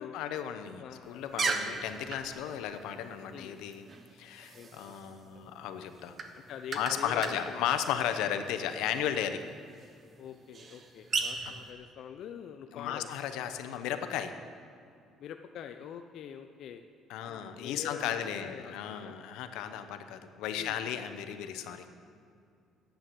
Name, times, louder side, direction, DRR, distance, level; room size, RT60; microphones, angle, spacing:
voice 1, 0.0-3.8 4.2-6.1 6.7-9.4 11.4-11.5 12.7-14.3 17.1-21.9, left 9 dB, 90° left, 8 dB, 0.8 m, -35 dB
voice 2, 0.8-1.8 3.3-3.5 4.5-4.9 6.5-7.7 10.2-13.1 15.2-16.9 17.2-19.2 20.5-20.8, left 8 dB, 60° left, 6 dB, 0.5 m, -45 dB
sound 1, 1.0-11.7, right 4 dB, 35° right, 1.0 m, -39 dB
10.5 x 8.4 x 7.6 m, 2.4 s
cardioid pair, 135°, 0 cm